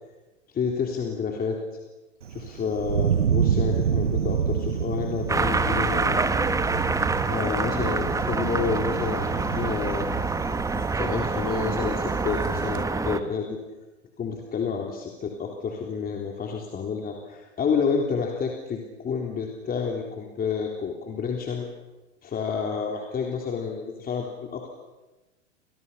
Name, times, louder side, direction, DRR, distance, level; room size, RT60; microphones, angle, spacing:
voice 1, 0.5-1.6 2.3-6.3 7.3-10.1 10.9-13.6 14.2-21.7 22.2-24.7, left 6 dB, 25° left, 1 dB, 3.7 m, -29 dB
Thunder, 2.2-12.8, right 8 dB, 85° right, 1.1 m, -29 dB
sound 1, 5.3-13.2, right 3 dB, 10° right, 1.2 m, -26 dB
30.0 x 26.0 x 5.7 m, 1.1 s
hypercardioid pair, 100°, 36 cm